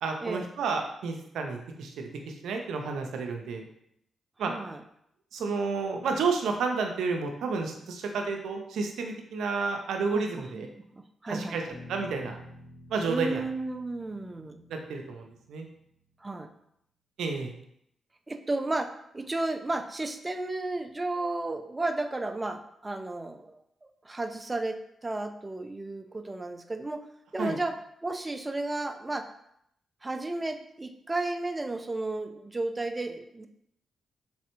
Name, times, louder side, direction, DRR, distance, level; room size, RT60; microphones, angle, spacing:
voice 1, 0.0-3.7 4.4-4.5 5.3-10.7 11.3-11.6 11.9-12.4 12.9-13.4 14.7-15.7 17.2-17.5 27.4-27.6, right 4 dB, 80° right, 3 dB, 0.5 m, -31 dB
voice 2, 4.5-4.8 10.1-10.6 10.9-11.8 13.1-14.6 16.2-16.5 18.3-27.0 27.3-27.7 28.0-29.3 30.0-33.5, right 2 dB, 25° right, 7 dB, 0.4 m, -33 dB
Bass guitar, 11.7-16.1, left 1 dB, 45° left, 1.2 m, -50 dB
3.4 x 3.1 x 2.9 m, 0.74 s
supercardioid pair, 55°, 0 cm